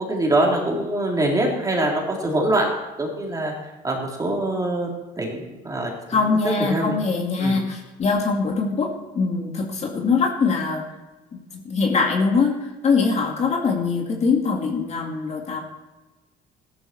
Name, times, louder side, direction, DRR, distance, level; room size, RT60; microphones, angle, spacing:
voice 1, 0.0-2.7 3.0-3.5 3.8-7.0 7.4-7.6, right 1 dB, 20° right, -1 dB, 3.8 m, -24 dB
voice 2, 6.1-8.9 9.1-10.8 11.3-12.5 12.8-15.6, left 4 dB, 40° left, 0 dB, 2.4 m, -22 dB
14.5 x 12.0 x 4.6 m, 1.1 s
cardioid pair, 110°, 17 cm